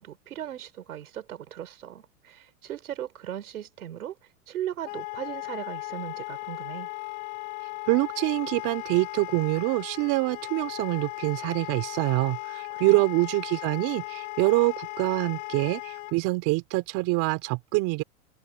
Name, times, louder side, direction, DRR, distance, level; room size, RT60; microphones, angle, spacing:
voice 1, 0.0-4.2 4.5-6.9 12.8-13.1, right 11 dB, 85° right, 5.4 m, -38 dB
Wind instrument woodwind instrument, 4.8-16.2, left 27 dB, 45° left, 3.6 m, -37 dB
voice 2, 7.9-18.0, right 23 dB, 45° right, 3.1 m, -25 dB
hypercardioid pair, 120°, 43 cm